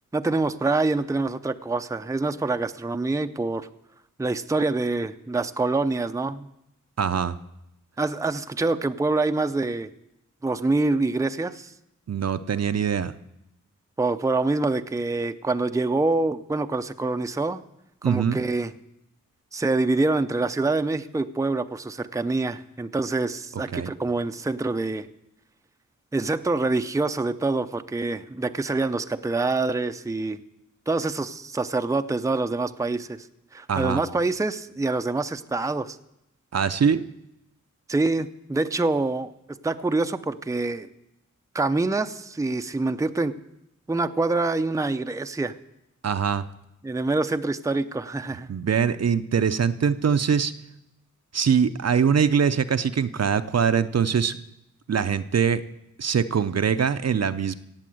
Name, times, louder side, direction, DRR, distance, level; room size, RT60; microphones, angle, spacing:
voice 1, 0.1-3.7 4.2-6.5 8.0-9.9 10.4-11.7 14.0-17.6 18.0-18.7 19.5-25.1 26.1-30.4 30.9-33.3 33.5-36.0 37.9-39.3 39.6-40.9 41.5-43.4 43.9-45.5 46.8-48.5, right 3 dB, 10° right, 9 dB, 0.6 m, -25 dB
voice 2, 7.0-7.4 12.1-13.1 18.0-18.4 23.7-23.9 33.7-34.0 36.5-37.0 46.0-46.4 48.5-50.5 51.3-54.4 54.9-55.6 56.0-57.6, right 7 dB, 55° right, 11 dB, 0.6 m, -23 dB
16.5 x 8.4 x 7.7 m, 0.85 s
wide cardioid pair, 90°, 31 cm